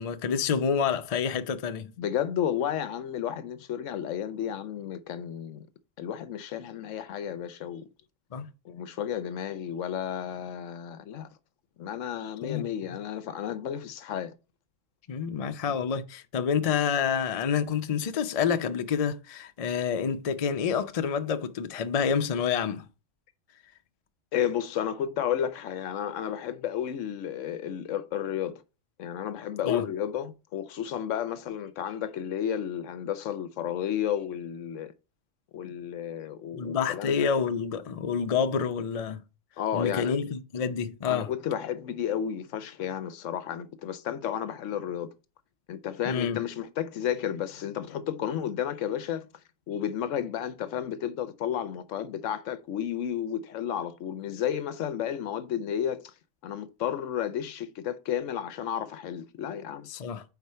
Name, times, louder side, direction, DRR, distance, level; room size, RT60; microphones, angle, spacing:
voice 1, 0.0-1.9 8.3-8.5 12.4-12.7 15.1-22.8 29.6-29.8 36.5-39.2 39.7-41.3 46.1-46.4 59.9-60.2, left 7 dB, 55° left, 0.4 m, -28 dB
voice 2, 2.0-5.7 6.0-7.8 8.6-11.3 11.8-14.3 24.3-28.6 29.0-34.9 35.5-37.2 39.6-40.1 41.1-45.1 45.7-49.3 49.7-56.1 56.4-59.9, left 9 dB, 75° left, 1.0 m, -32 dB
4.7 x 4.3 x 5.5 m
omnidirectional pair, 1.4 m